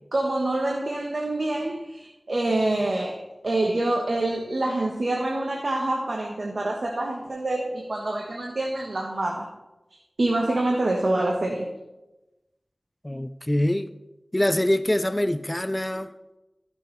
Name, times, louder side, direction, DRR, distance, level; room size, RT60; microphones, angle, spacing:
voice 1, 0.1-9.5 10.2-11.7, right 2 dB, 70° right, 1.2 m, -26 dB
voice 2, 13.0-13.9 14.3-16.1, left 1 dB, 20° left, 0.4 m, -24 dB
14.0 x 6.8 x 3.2 m
wide cardioid pair, 50°, 0 cm